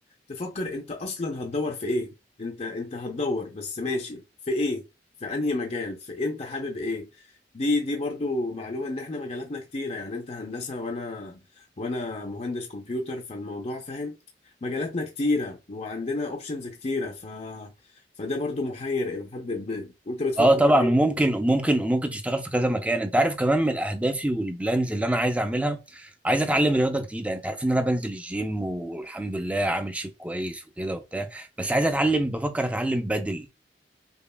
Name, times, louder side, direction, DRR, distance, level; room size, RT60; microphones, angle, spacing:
voice 1, 0.3-4.8 5.2-7.3 7.5-14.1 14.6-17.7 18.2-20.9, left 2 dB, 40° left, 0.6 m, -30 dB
voice 2, 20.4-33.5, right 1 dB, 10° right, 0.5 m, -25 dB
5.3 x 2.3 x 2.2 m
head